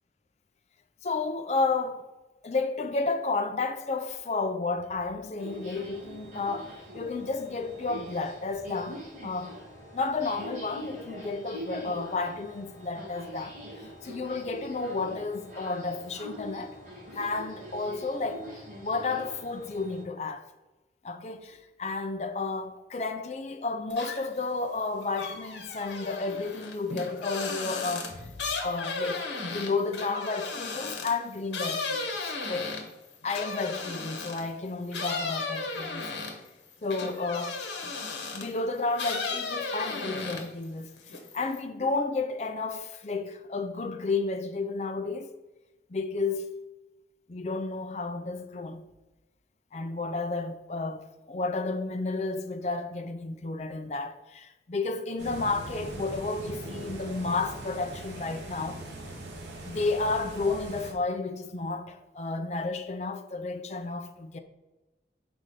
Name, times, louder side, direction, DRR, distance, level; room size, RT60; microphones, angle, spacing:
voice 1, 1.0-2.1 2.4-9.6 9.9-13.6 14.0-16.8 17.1-20.4 21.0-28.3 28.6-32.2 32.5-32.7 33.2-36.1 36.8-37.6 38.3-45.3 45.9-46.5 47.3-48.8 49.7-58.8 59.6-64.4, left 3 dB, 40° left, 0.4 m, -32 dB
sound 1, 5.4-20.0, equal, 45° right, 2.0 m, -44 dB
sound 2, 23.9-24.4 24.8-34.5 34.9-38.6 38.9-40.6 41.0-41.6, left 4 dB, 85° left, 1.0 m, -35 dB
sound 3, 55.2-60.9, right 1 dB, 80° right, 1.0 m, -41 dB
4.8 x 3.9 x 5.5 m
head